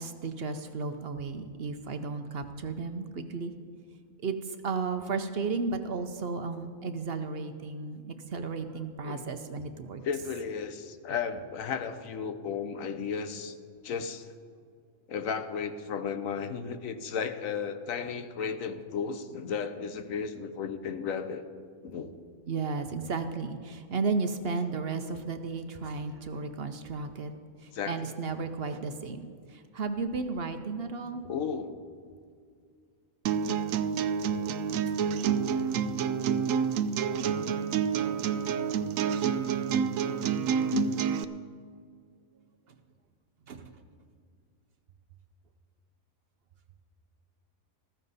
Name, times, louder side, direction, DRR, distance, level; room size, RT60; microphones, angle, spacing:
voice 1, 0.0-3.5 4.2-10.0 22.5-27.3 27.6-31.2 43.5-43.7, right 4 dB, 55° right, 8 dB, 0.8 m, -34 dB
voice 2, 10.0-13.6 13.8-14.3 15.1-21.5 21.8-22.1 27.7-28.1 31.2-31.8 40.5-41.1, left 6 dB, 80° left, 10 dB, 1.2 m, -34 dB
sound 1, 33.3-41.2, right 7 dB, 80° right, 1.0 m, -28 dB
14.5 x 14.0 x 4.1 m, 2.2 s
omnidirectional pair, 1.4 m